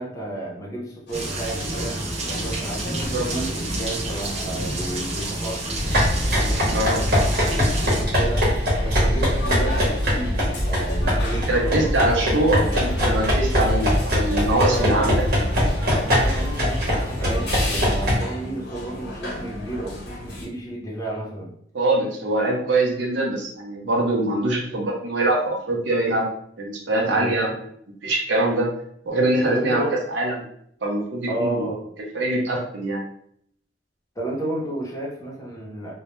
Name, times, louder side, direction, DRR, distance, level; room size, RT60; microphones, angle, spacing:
voice 1, 0.0-2.0 2.3-5.8 6.2-8.5 8.8-12.4 14.7-15.2 15.9-21.5 27.0-27.5 29.4-30.0 31.3-31.9 34.2-35.9, right 1 dB, 20° left, -4 dB, 0.6 m, -32 dB
sound 1, 1.1-20.5, left 1 dB, 65° left, 0.7 m, -36 dB
sound 2, 1.1-8.0, right 1 dB, 35° right, 0.5 m, -29 dB
sound 3, 5.7-18.2, equal, 60° right, 0.9 m, -22 dB
voice 2, 11.3-15.1 21.7-26.3 26.6-27.5 28.0-28.7 29.1-30.4 30.8-31.7 32.1-33.0, right 2 dB, 85° right, -1 dB, 0.7 m, -23 dB
2.1 x 2.1 x 2.9 m, 0.68 s
head